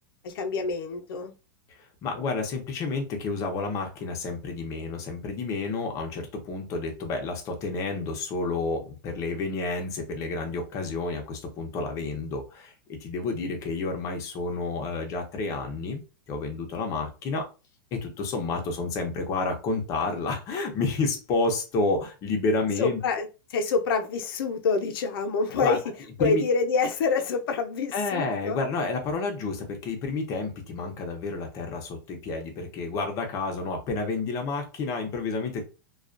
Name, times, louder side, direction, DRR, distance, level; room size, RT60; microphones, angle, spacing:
voice 1, 0.2-1.3 22.8-25.8 26.2-28.6, left 4 dB, 75° left, 5 dB, 0.6 m, -27 dB
voice 2, 1.8-16.0 16.3-17.5 17.9-23.0 25.6-25.8 26.2-26.4 27.9-35.6, left 3 dB, 25° left, 3 dB, 0.6 m, -30 dB
2.3 x 2.2 x 2.4 m, 0.30 s
supercardioid pair, 160°, 12 cm